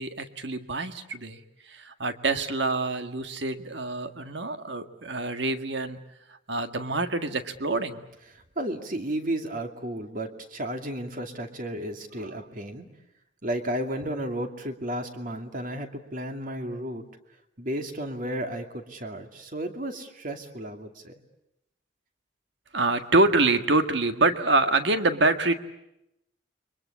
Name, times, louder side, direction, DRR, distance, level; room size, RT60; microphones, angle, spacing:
voice 1, 0.0-6.0 6.3-8.0 12.2-12.4 22.7-25.5, right 2 dB, 65° right, 8 dB, 1.8 m, -26 dB
voice 2, 8.6-12.9 13.4-17.0 17.6-21.1, right 1 dB, 45° right, 6 dB, 2.5 m, -33 dB
29.5 x 23.5 x 8.5 m, 0.87 s
head